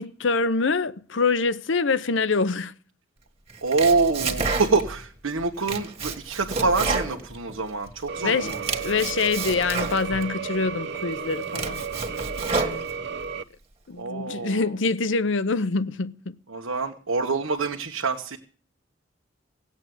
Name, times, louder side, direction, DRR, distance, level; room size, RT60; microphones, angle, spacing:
voice 1, 0.0-2.7 8.2-8.5 8.8-11.8 12.5-12.9 13.9-16.3, left 4 dB, 65° left, 0.7 m, -25 dB
Domestic sounds home sounds, 3.5-5.0 5.4-7.9 8.3-10.3 10.8-10.9 11.3-13.3, right 4 dB, 30° right, 1.7 m, -30 dB
voice 2, 3.6-8.8 13.9-14.7 16.5-18.4, right 4 dB, 90° right, 1.3 m, -26 dB
sound 1, 8.1-13.4, right 6 dB, 55° right, 0.7 m, -33 dB
17.5 x 8.5 x 7.8 m
head